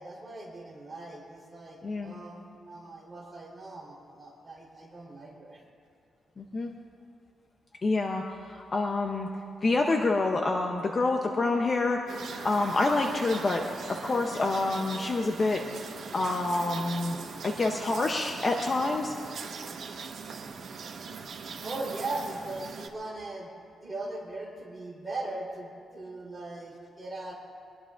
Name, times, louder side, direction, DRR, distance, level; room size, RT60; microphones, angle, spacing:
voice 1, 0.0-5.6 21.6-23.5 23.8-27.3, right 2 dB, 10° right, -5 dB, 3.7 m, -39 dB
voice 2, 1.8-2.2 6.4-6.8 7.8-9.3 9.6-12.1 12.4-15.6 16.1-17.2 17.4-19.1, left 3 dB, 25° left, 2 dB, 0.7 m, -27 dB
sound 1, 12.1-22.9, right 5 dB, 55° right, 1.3 m, -40 dB
24.0 x 20.0 x 2.6 m, 2.5 s
wide cardioid pair, 175°, 0 cm